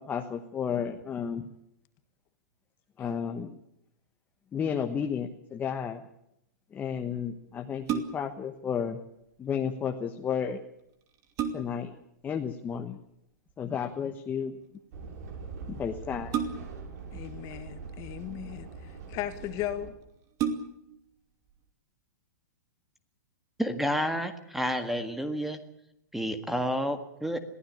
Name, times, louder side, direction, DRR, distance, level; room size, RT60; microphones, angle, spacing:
voice 1, 0.0-1.5 3.0-3.5 4.5-6.0 6.7-9.0 9.4-10.6 11.5-11.9 12.2-13.0 13.6-14.5 15.7-16.4, left 7 dB, 15° left, 5 dB, 1.2 m, -32 dB
sound 1, 7.6-8.4 10.4-10.5 11.0-11.9 13.5-13.9 16.3-16.9 17.9-18.6 19.3-19.4 19.7-19.8 20.3-21.0 21.5-21.6, right 7 dB, 30° right, 2.5 m, -33 dB
sound 2, 14.9-19.9, right 5 dB, 55° right, 6.1 m, -43 dB
voice 2, 17.1-18.7 19.1-20.0, left 12 dB, 35° left, 10 dB, 1.7 m, -36 dB
voice 3, 23.6-25.6 26.1-27.4, equal, ahead, 8 dB, 1.7 m, -30 dB
22.0 x 15.5 x 8.7 m, 0.81 s
hypercardioid pair, 140°, 10 cm